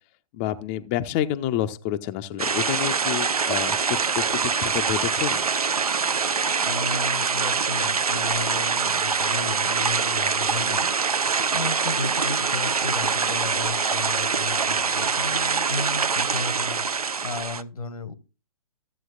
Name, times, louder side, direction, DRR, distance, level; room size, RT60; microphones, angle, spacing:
voice 1, 0.3-5.4, left 11 dB, 25° left, 0.5 m, -29 dB
sound 1, 2.4-17.6, right 5 dB, 85° right, 0.6 m, -24 dB
voice 2, 6.6-10.9 11.5-16.8 17.2-18.1, left 4 dB, 75° left, 1.0 m, -34 dB
13.5 x 7.6 x 2.4 m
figure-of-eight pair, 125°, 19 cm